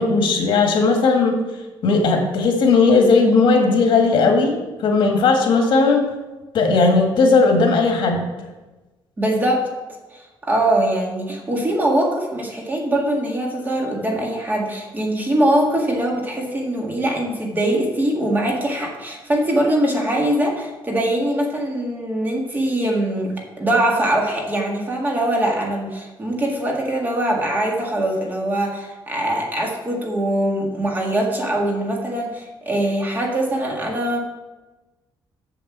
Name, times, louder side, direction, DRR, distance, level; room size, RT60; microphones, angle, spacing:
voice 1, 0.0-1.4 1.8-4.6 4.8-6.0 6.5-8.2, left 4 dB, 65° left, 2 dB, 1.9 m, -16 dB
voice 2, 9.2-9.7 10.1-34.2, right 1 dB, 20° right, 0 dB, 1.8 m, -22 dB
7.1 x 6.8 x 7.1 m, 1.1 s
cardioid pair, 155°, 9 cm